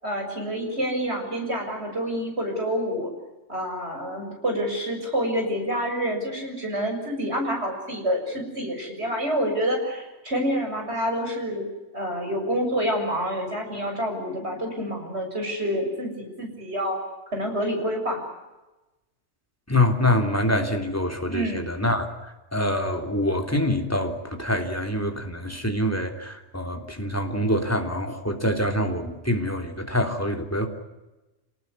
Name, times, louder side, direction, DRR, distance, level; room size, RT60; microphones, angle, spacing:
voice 1, 0.0-3.1 3.5-11.7 11.9-17.0 17.3-18.2 21.3-21.7, equal, 65° right, 3 dB, 7.5 m, -28 dB
voice 2, 19.7-30.7, left 1 dB, 10° left, 3 dB, 3.4 m, -25 dB
28.0 x 19.5 x 9.8 m, 1.1 s
omnidirectional pair, 1.2 m